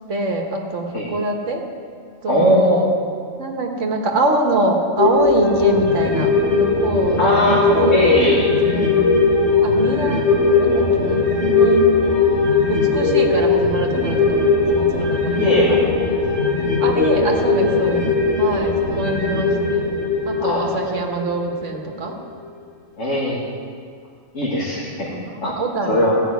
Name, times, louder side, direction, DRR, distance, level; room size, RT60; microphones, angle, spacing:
voice 1, 0.1-1.6 2.2-2.9 3.4-7.4 7.7-8.0 8.2-9.1 9.6-10.2 10.6-11.9 12.7-15.5 16.8-18.1 18.4-19.8 20.3-22.2 25.1-26.1, right 2 dB, 75° right, 2 dB, 1.7 m, -24 dB
voice 2, 2.3-2.8 7.2-7.6 7.9-8.5 15.3-16.0 20.4-20.7 23.0-23.4 24.3-25.1 25.4-25.5 25.9-26.2, equal, 80° left, -5 dB, 2.2 m, -19 dB
sound 1, 5.0-21.8 22.1-22.2, left 4 dB, 65° left, 2.7 m, -18 dB
15.0 x 6.0 x 9.3 m, 2.1 s
omnidirectional pair, 1.3 m